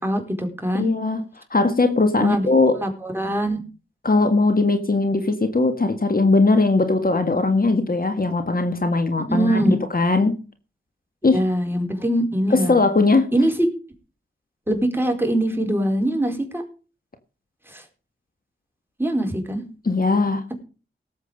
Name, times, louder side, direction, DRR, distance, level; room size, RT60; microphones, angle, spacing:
voice 1, 0.0-0.9 2.2-2.5 2.8-3.6 9.3-9.7 11.3-12.8 13.3-13.5 14.7-16.6 17.7-17.8 19.0-19.6, right 1 dB, 10° right, 3 dB, 4.5 m, -22 dB
voice 2, 0.7-1.2 1.5-2.8 4.0-10.4 11.2-11.4 12.5-13.3 19.8-20.4, left 3 dB, 45° left, 8 dB, 1.8 m, -19 dB
18.5 x 8.1 x 5.2 m, 0.35 s
wide cardioid pair, 65°, 21 cm